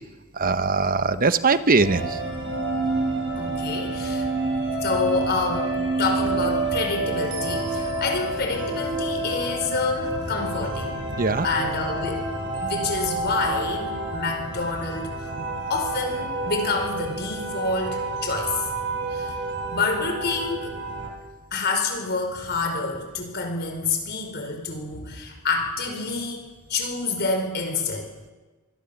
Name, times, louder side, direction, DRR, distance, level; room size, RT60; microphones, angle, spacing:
voice 1, 0.3-2.2 11.2-11.5 15.4-15.5, right 4 dB, 40° right, 11 dB, 1.0 m, -21 dB
sound 1, 1.8-21.1, right 2 dB, 55° right, 7.2 m, -28 dB
voice 2, 3.4-4.3 4.8-11.0 11.4-15.1 15.7-18.6 19.1-19.3 19.7-20.8 21.5-28.1, left 3 dB, 50° left, 4 dB, 5.2 m, -28 dB
24.5 x 23.0 x 7.3 m, 1.2 s
head